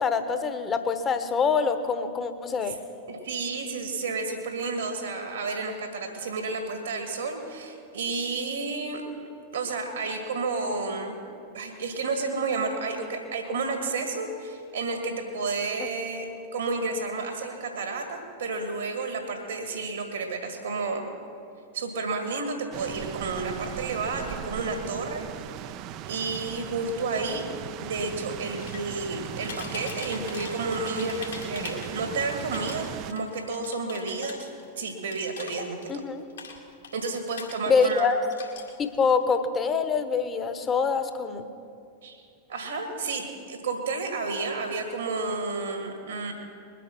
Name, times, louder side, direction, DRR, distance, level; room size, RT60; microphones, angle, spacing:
voice 1, 0.0-2.8 35.9-36.2 37.7-38.2 38.8-41.5, left 5 dB, 25° left, 10 dB, 1.0 m, -25 dB
voice 2, 3.1-9.0 9.5-11.2 11.5-21.1 21.7-25.2 25.6-25.7 26.1-27.5 27.8-34.5 34.8-35.8 36.9-38.1 42.0-42.2 42.5-46.3, right 3 dB, 70° right, 4 dB, 1.7 m, -31 dB
sound 1, 22.7-33.1, right 11 dB, 40° right, 0.4 m, -38 dB
sound 2, 28.6-29.1 29.4-32.1 32.4-36.0 36.3-38.1 38.3-39.1, left 5 dB, 70° left, 2.2 m, -42 dB
21.0 x 8.5 x 5.9 m, 2.5 s
figure-of-eight pair, 90°, 0 cm